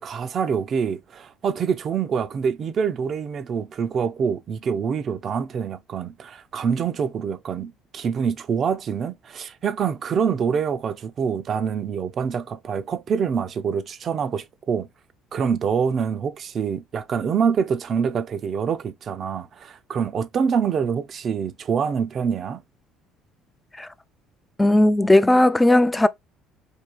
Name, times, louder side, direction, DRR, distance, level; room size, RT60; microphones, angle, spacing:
voice 1, 0.0-14.9 15.3-22.6, right 6 dB, 45° right, 0.5 m, -25 dB
voice 2, 24.6-26.1, left 1 dB, 10° left, 0.4 m, -16 dB
4.7 x 2.8 x 2.3 m
cardioid pair, 100°, 0 cm